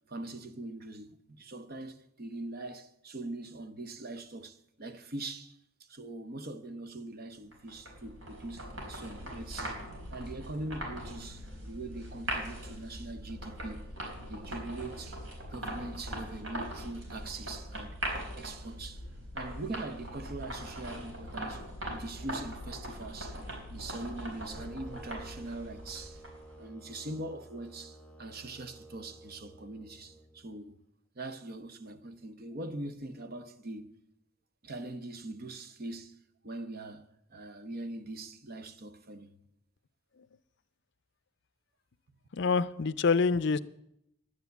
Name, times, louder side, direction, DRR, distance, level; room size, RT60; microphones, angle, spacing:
voice 1, 0.1-9.8 10.1-13.9 14.3-15.2 15.5-18.0 18.3-19.1 19.3-23.4 23.7-26.2 26.6-30.8 31.1-34.0 34.6-39.3, right 2 dB, 50° right, 0.9 m, -42 dB
sound 1, 7.5-26.5, right 1 dB, 75° right, 4.1 m, -41 dB
sound 2, 24.6-30.6, right 2 dB, 5° left, 0.9 m, -52 dB
voice 2, 42.3-43.6, left 4 dB, 60° left, 0.5 m, -26 dB
11.0 x 9.5 x 8.1 m
head